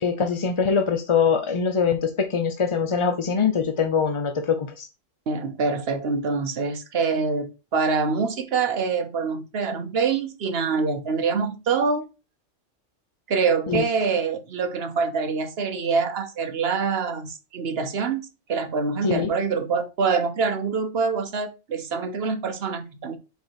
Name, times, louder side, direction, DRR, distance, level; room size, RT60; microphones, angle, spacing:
voice 1, 0.0-4.9 13.7-13.8 19.0-19.3, left 6 dB, 45° left, 0.4 m, -23 dB
voice 2, 5.3-12.0 13.3-23.2, right 5 dB, 55° right, 1.1 m, -25 dB
5.1 x 4.5 x 4.6 m
omnidirectional pair, 1.3 m